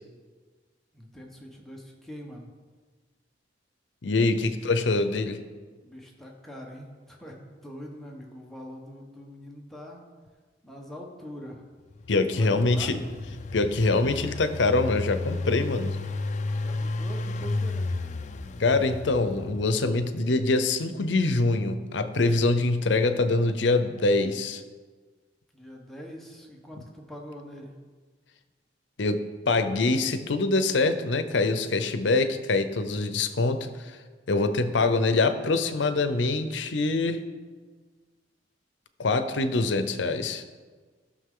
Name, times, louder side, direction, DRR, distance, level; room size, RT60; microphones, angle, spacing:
voice 1, 0.9-2.5 5.8-10.0 10.6-11.6 12.3-13.0 16.6-17.9 25.5-27.7, equal, ahead, -1 dB, 1.2 m, -43 dB
voice 2, 4.0-5.4 12.1-13.0 13.5-16.0 18.6-24.6 29.0-29.2 29.5-34.0 34.3-37.2 39.0-40.4, left 3 dB, 75° left, 10 dB, 0.7 m, -24 dB
Engine, 11.9-19.9, left 2 dB, 40° left, 0.4 m, -33 dB
14.5 x 6.4 x 3.8 m, 1.4 s
head